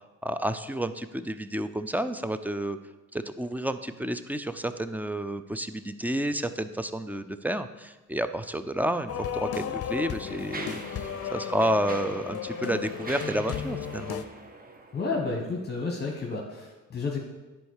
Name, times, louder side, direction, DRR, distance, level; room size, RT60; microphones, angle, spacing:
voice 1, 0.2-2.8 3.1-14.2, right 1 dB, 5° right, 11 dB, 0.4 m, -30 dB
Mechanisms, 8.9-9.0 9.7-15.5, right 3 dB, 30° right, 0.9 m, -44 dB
sound 1, 9.1-14.2, left 9 dB, 55° left, 0.6 m, -34 dB
voice 2, 14.9-17.2, left 3 dB, 35° left, 1 dB, 1.3 m, -31 dB
10.0 x 4.4 x 6.5 m, 1.2 s
cardioid pair, 90°, 30 cm